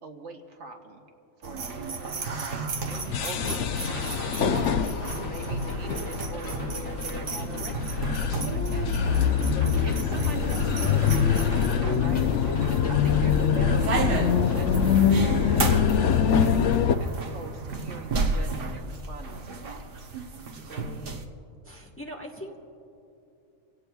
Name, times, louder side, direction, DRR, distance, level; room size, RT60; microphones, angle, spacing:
voice 1, 0.0-1.0 1.4-2.1 2.4-3.8 4.4-4.9 5.2-8.9 9.8-11.4 11.9-12.3 12.9-20.1, right 3 dB, 65° right, 3 dB, 1.3 m, -42 dB
sound 1, 1.4-21.2, right 3 dB, 50° right, 1.0 m, -33 dB
sound 2, 2.8-16.9, left 7 dB, 70° left, 0.9 m, -24 dB
voice 2, 3.3-3.7 20.6-21.1 21.6-22.6, equal, 10° left, -1 dB, 1.2 m, -43 dB
sound 3, 5.1-15.1, left 3 dB, 90° left, 1.6 m, -41 dB
27.5 x 17.0 x 2.3 m, 2.6 s
omnidirectional pair, 1.4 m